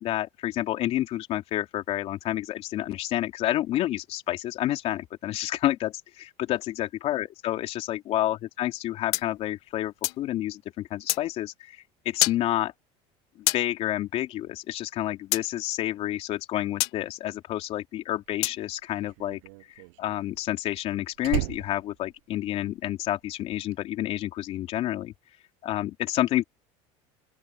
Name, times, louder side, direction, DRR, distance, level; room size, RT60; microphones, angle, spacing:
voice 1, 0.0-11.5 12.0-12.7 13.5-19.4 20.0-25.1 25.6-26.4, left 14 dB, 45° left, 3.3 m, -29 dB
sound 1, 9.1-10.3 11.1-11.2 12.2-12.4 13.5-13.6 15.3-15.5 16.8-17.0 18.4-18.6, left 21 dB, 80° left, 1.3 m, -26 dB
Slam, 18.3-23.0 23.3-23.7, right 29 dB, 80° right, 6.4 m, -35 dB
open air
cardioid pair, 150°, 14 cm